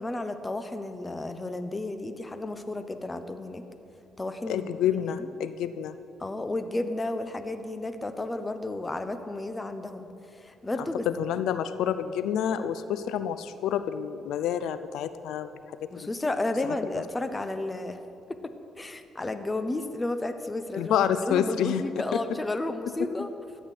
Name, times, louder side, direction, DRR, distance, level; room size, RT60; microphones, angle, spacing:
voice 1, 0.0-3.6 4.2-4.7 5.0-5.3 6.2-10.1 10.3-11.1 15.9-18.0 18.3-23.3, left 2 dB, 20° left, 9 dB, 0.9 m, -32 dB
voice 2, 4.5-6.0 11.1-16.1 16.9-17.0 20.7-21.8 22.1-22.2, left 9 dB, 85° left, 12 dB, 0.4 m, -28 dB
13.5 x 8.1 x 6.6 m, 2.7 s
cardioid pair, 90°, 0 cm